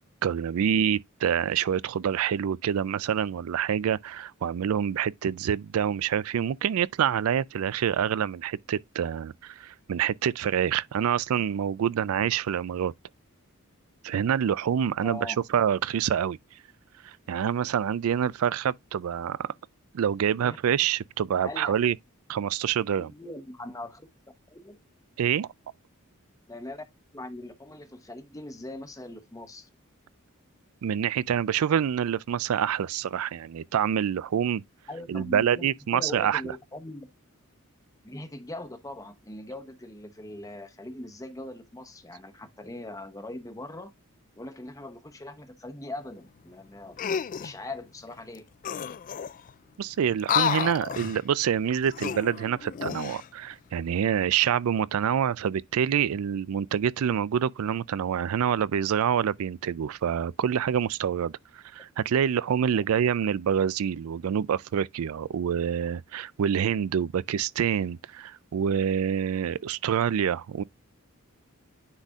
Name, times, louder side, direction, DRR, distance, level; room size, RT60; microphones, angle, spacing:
voice 1, 0.2-12.9 14.0-16.4 17.0-19.5 19.9-22.0 22.3-23.1 25.2-25.5 30.8-34.6 35.1-36.6 49.8-70.6, right 8 dB, 80° right, 0.4 m, -26 dB
voice 2, 15.0-15.4 20.4-20.6 21.4-21.8 23.0-24.0 24.5-24.8 26.5-26.8 27.1-29.7 34.9-35.7 35.9-37.1 38.0-43.9 44.3-48.4 62.7-62.8, left 1 dB, 15° left, 0.8 m, -41 dB
sound 1, 47.0-47.5 48.3-48.4 48.6-49.5 50.2-51.2 51.8-53.3 53.8-54.0, left 8 dB, 40° left, 0.3 m, -30 dB
9.7 x 4.1 x 2.4 m
head